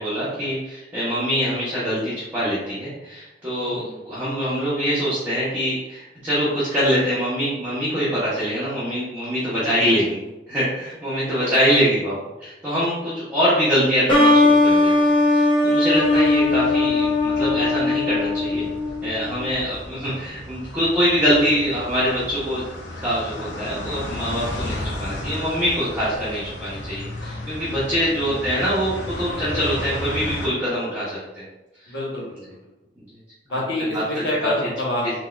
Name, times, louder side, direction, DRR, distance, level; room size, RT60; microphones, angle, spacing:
voice 1, 0.0-10.2 10.5-18.7 19.0-22.6 23.0-31.4 33.9-34.7 35.0-35.1, equal, 10° right, -11 dB, 0.8 m, -24 dB
voice 2, 3.6-4.0 9.5-10.0 11.1-11.5 31.9-32.6 33.5-35.1, left 1 dB, 70° left, -5 dB, 1.1 m, -28 dB
sound 1, 14.1-19.5, left 2 dB, 30° left, 0.8 m, -19 dB
sound 2, 15.9-30.5, left 1 dB, 90° left, 0.6 m, -34 dB
4.0 x 2.3 x 2.4 m, 1.0 s
head